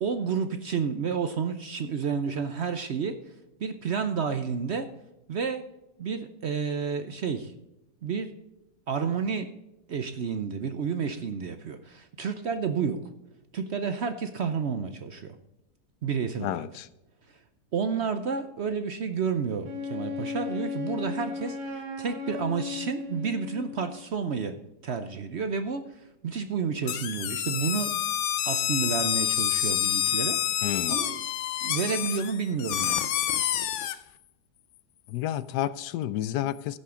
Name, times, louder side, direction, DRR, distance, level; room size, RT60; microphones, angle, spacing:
voice 1, 0.0-3.3 3.6-4.9 5.3-5.6 6.0-7.5 8.0-8.3 8.9-9.5 9.9-13.0 13.5-15.4 16.0-16.6 17.7-24.5 24.8-28.0 28.5-30.4 30.9-31.2 31.6-33.2, right 6 dB, 55° right, 0.8 m, -30 dB
voice 2, 16.4-16.9 30.6-31.0 35.1-36.8, left 12 dB, 85° left, 1.2 m, -30 dB
Wind instrument woodwind instrument, 19.6-24.0, left 4 dB, 85° right, 2.2 m, -35 dB
sound 1, 26.9-34.0, left 11 dB, 65° left, 0.7 m, -28 dB
16.0 x 6.4 x 3.8 m
omnidirectional pair, 1.7 m